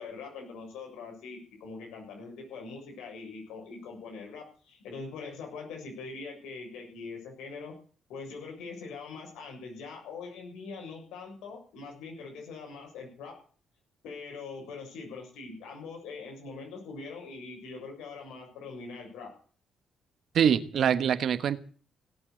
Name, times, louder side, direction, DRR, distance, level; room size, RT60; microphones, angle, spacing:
voice 1, 0.0-7.8 8.1-13.3 14.0-19.3, left 4 dB, 90° left, 7.1 m, -42 dB
voice 2, 20.3-21.6, right 8 dB, 65° right, 1.3 m, -24 dB
17.5 x 8.4 x 7.9 m
cardioid pair, 90°, 0 cm